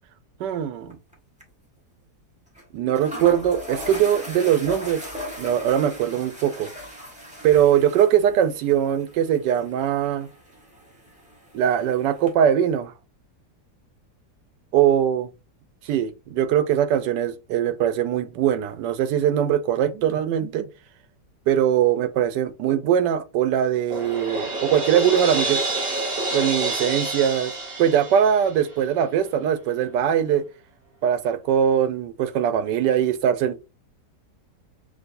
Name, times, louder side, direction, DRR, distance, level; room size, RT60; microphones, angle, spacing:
voice 1, 0.4-1.0 2.7-5.0 5.4-6.8 7.4-10.3 11.5-12.9 14.7-15.3 15.8-20.7 21.5-25.6 26.3-27.5 27.8-30.4 31.0-33.6, right 9 dB, 90° right, 1.3 m, -21 dB
sound 1, 0.9-1.1 1.4-1.5 2.5-2.6 2.9-12.3, equal, 5° right, 1.0 m, -39 dB
Crash cymbal, 23.9-28.8, right 2 dB, 35° right, 1.7 m, -28 dB
6.2 x 2.9 x 2.5 m
omnidirectional pair, 1.8 m